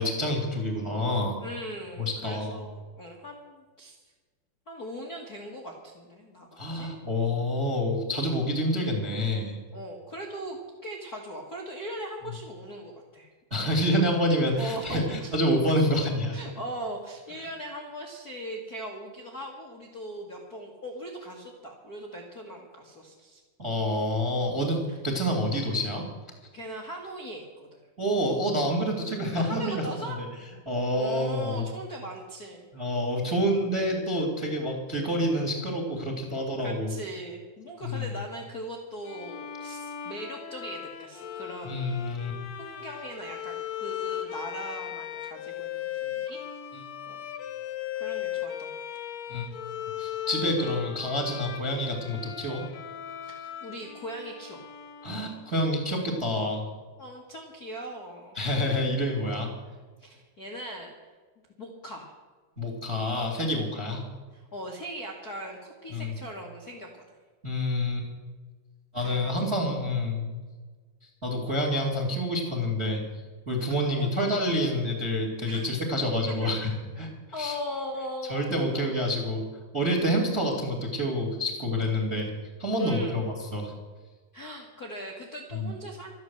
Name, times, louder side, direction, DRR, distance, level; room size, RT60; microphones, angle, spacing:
voice 1, 0.0-1.4 2.0-2.6 6.6-9.6 13.5-16.4 23.6-26.0 28.0-30.2 30.6-31.6 32.7-36.9 37.8-38.1 41.6-42.3 49.3-49.5 50.0-52.6 55.0-56.6 58.3-59.5 62.6-64.0 65.9-66.1 67.4-68.1 68.9-70.4 71.0-73.0 73.4-76.7 77.0-77.1 77.3-77.6 78.3-79.4 79.7-82.3 82.6-83.2 83.5-83.7 85.5-85.7, equal, 25° right, 2 dB, 1.6 m, -28 dB
voice 2, 1.4-3.9 4.7-6.9 9.7-13.3 13.6-13.7 14.5-15.3 16.3-23.4 24.9-25.0 26.5-27.7 29.3-30.2 30.9-32.7 36.6-42.1 42.6-46.4 47.1-47.2 47.9-48.8 53.2-54.7 57.0-58.5 60.0-60.9 61.6-62.1 63.8-64.0 64.3-67.2 69.0-69.3 74.0-74.1 74.5-74.7 75.5-75.7 76.4-76.5 77.3-79.1 82.8-83.3 84.3-86.1, equal, 65° left, -1 dB, 0.9 m, -39 dB
Bowed string instrument, 39.0-55.6, left 11 dB, 80° left, 1.5 m, -37 dB
13.0 x 11.0 x 7.8 m, 1.4 s
omnidirectional pair, 4.7 m